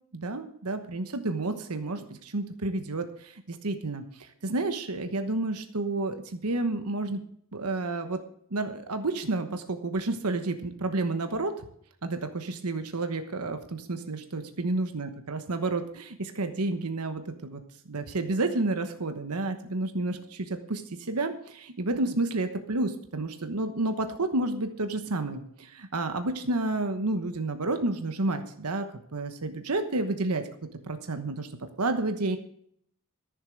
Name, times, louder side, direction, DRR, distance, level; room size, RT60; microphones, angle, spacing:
voice 1, 0.1-7.2 7.5-8.2 8.5-11.6 12.0-17.6 17.8-28.9 29.1-30.4 30.9-31.5 31.8-32.4, right 2 dB, 80° right, 7 dB, 1.1 m, -30 dB
13.5 x 7.3 x 6.4 m, 0.67 s
head